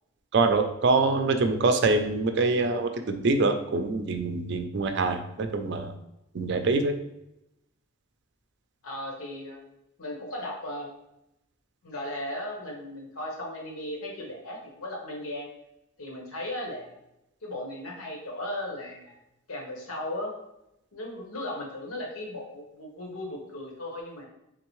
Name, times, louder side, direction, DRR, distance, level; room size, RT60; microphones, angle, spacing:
voice 1, 0.3-5.9 6.3-6.9, right 3 dB, 55° right, 7 dB, 0.4 m, -25 dB
voice 2, 8.8-9.6 10.0-10.9 11.8-15.5 16.0-16.9 17.4-19.1 19.5-20.3 20.9-24.3, left 1 dB, 85° left, 0 dB, 1.1 m, -36 dB
3.7 x 3.4 x 3.1 m, 0.87 s
head